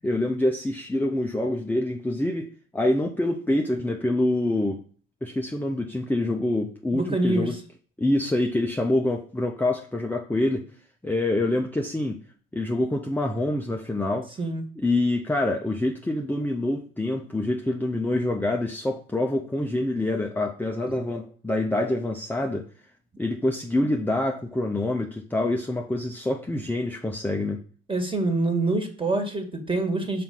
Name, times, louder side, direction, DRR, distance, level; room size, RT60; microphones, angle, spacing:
voice 1, 0.0-4.8 5.2-7.5 8.0-10.6 11.0-12.2 12.5-14.3 14.8-22.7 23.2-27.6, left 1 dB, 5° left, 1 dB, 0.7 m, -26 dB
voice 2, 6.9-7.6 14.4-14.6 20.9-21.0 27.9-30.2, right 2 dB, 15° right, 4 dB, 1.7 m, -26 dB
5.8 x 4.2 x 3.8 m, 0.44 s
hypercardioid pair, 55°, 30 cm